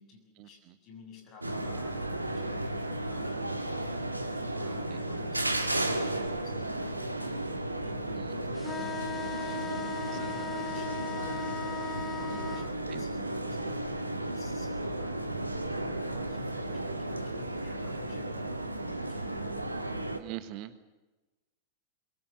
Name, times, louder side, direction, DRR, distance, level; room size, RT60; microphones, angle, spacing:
voice 1, 0.0-4.0 4.4-7.4 7.8-9.7 10.0-11.4 12.0-19.7, left 2 dB, 35° left, 4 dB, 7.4 m, -51 dB
sound 1, 1.4-20.2, right 1 dB, 85° right, 1.8 m, -34 dB
sound 2, 8.6-12.7, left 6 dB, 15° left, 1.2 m, -38 dB
voice 2, 20.2-20.9, right 14 dB, 45° right, 12 dB, 1.5 m, -41 dB
24.0 x 22.0 x 7.3 m, 1.1 s
figure-of-eight pair, 90°, 0 cm